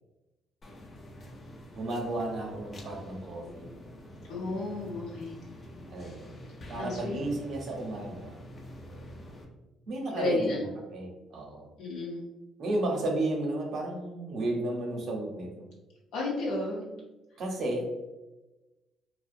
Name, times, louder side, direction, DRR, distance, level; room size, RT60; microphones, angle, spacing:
sound 1, 0.6-9.5, equal, 35° left, 0.4 m, -47 dB
voice 1, 1.7-3.7 5.9-6.4 6.7-8.4 9.9-10.7 10.9-11.7 12.6-15.7 17.4-17.8, right 2 dB, 60° right, 0 dB, 0.7 m, -33 dB
voice 2, 4.3-5.5 6.8-7.2 10.1-10.6 11.8-12.3 16.1-16.8, left 2 dB, 90° left, -5 dB, 0.6 m, -32 dB
2.4 x 2.1 x 2.5 m, 1.1 s
cardioid pair, 105°, 0 cm